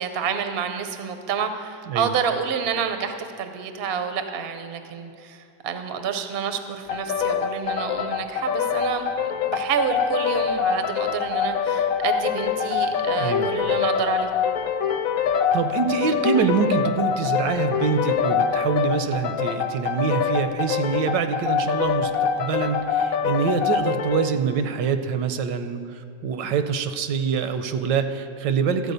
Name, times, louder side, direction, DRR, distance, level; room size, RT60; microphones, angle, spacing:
voice 1, 0.0-9.1 9.5-14.3, right 7 dB, 60° right, 7 dB, 0.6 m, -28 dB
sound 1, 6.9-24.3, left 7 dB, 70° left, 0.8 m, -24 dB
voice 2, 13.1-13.5 15.5-28.9, right 6 dB, 80° right, 9 dB, 1.2 m, -25 dB
13.0 x 4.7 x 8.0 m, 2.6 s
omnidirectional pair, 2.0 m